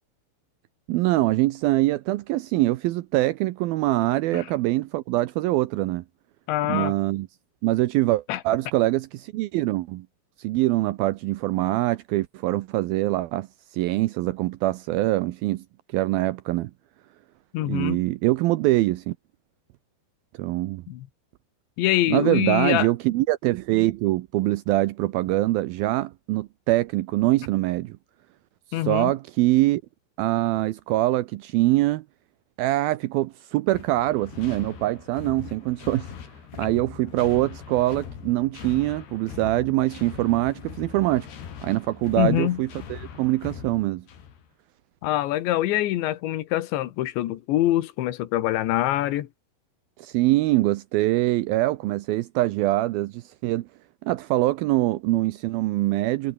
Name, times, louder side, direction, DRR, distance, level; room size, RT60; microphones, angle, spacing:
voice 1, 0.9-6.0 6.7-7.3 7.6-10.1 10.4-13.5 13.7-15.6 15.9-16.7 17.7-19.2 20.4-20.8 22.1-28.0 28.9-29.8 30.2-32.0 32.6-36.1 36.6-41.3 41.6-44.0 50.0-53.7 54.0-56.3, right 17 dB, 90° right, 2.1 m, -24 dB
voice 2, 6.5-6.9 8.3-8.4 17.5-18.0 20.9-21.1 21.8-22.9 28.7-29.1 42.2-42.6 45.0-49.3, left 14 dB, 80° left, 3.7 m, -24 dB
sound 1, 33.7-44.5, left 8 dB, 65° left, 5.4 m, -41 dB
omnidirectional pair, 5.1 m